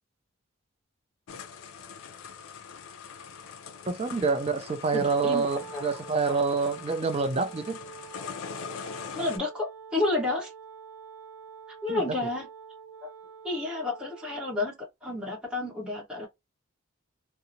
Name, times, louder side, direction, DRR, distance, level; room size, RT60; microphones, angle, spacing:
sound 1, 1.3-9.4, left 6 dB, 90° left, 0.4 m, -42 dB
voice 1, 3.8-7.8 11.9-12.0, right 4 dB, 30° right, 0.4 m, -27 dB
voice 2, 4.9-5.9 9.1-10.5 11.8-12.5 13.0-13.1 13.4-14.7 15.0-16.3, left 2 dB, 5° right, 1.0 m, -30 dB
Wind instrument woodwind instrument, 5.4-14.6, right 6 dB, 90° right, 0.7 m, -47 dB
2.7 x 2.0 x 2.6 m
head